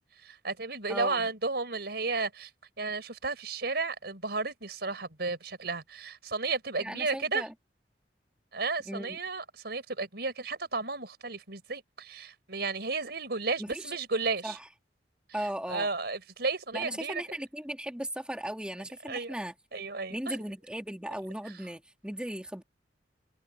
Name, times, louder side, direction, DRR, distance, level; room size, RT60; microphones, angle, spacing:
voice 1, 0.0-2.5 2.8-7.4 8.5-14.6 15.7-17.2 19.1-19.3 19.7-20.4, right 3 dB, 65° right, 5.3 m, -33 dB
voice 2, 0.9-1.3 6.8-7.5 8.9-9.2 13.6-14.0 14.4-14.7 15.3-15.9 16.7-19.5 20.1-22.6, right 1 dB, 5° right, 2.1 m, -37 dB
open air
head